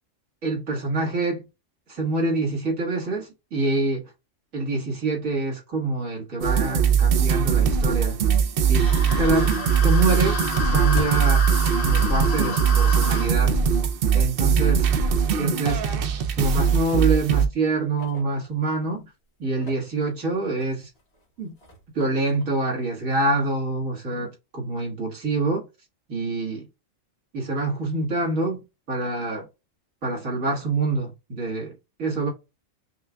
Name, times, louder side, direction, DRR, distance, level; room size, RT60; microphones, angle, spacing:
voice 1, 0.4-1.4 1.9-4.0 4.5-8.2 8.7-8.9 9.2-10.4 10.7-11.5 11.8-13.6 14.1-14.9 15.4-15.8 16.4-19.1 19.4-20.9 21.4-21.6 21.9-25.6 26.1-26.7 27.3-28.6 28.9-29.5 30.0-32.3, right 3 dB, 80° right, 2.1 m, -26 dB
sound 1, 6.4-17.5, right 7 dB, 60° right, 0.6 m, -21 dB
sound 2, 8.7-13.3, left 3 dB, 70° left, 2.1 m, -31 dB
sound 3, 16.3-18.9 19.4-23.3, equal, 55° left, 1.4 m, -41 dB
5.6 x 2.4 x 2.2 m
omnidirectional pair, 1.4 m